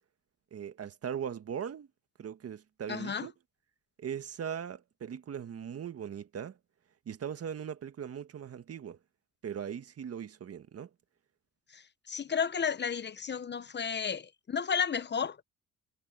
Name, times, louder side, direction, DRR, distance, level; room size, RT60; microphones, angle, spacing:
voice 1, 0.5-1.9 2.2-3.3 4.0-6.6 7.0-9.0 9.4-10.9, right 8 dB, 50° right, 1.6 m, -39 dB
voice 2, 2.9-3.3 11.7-15.4, left 6 dB, 35° left, 1.0 m, -33 dB
cardioid pair, 90°, 30 cm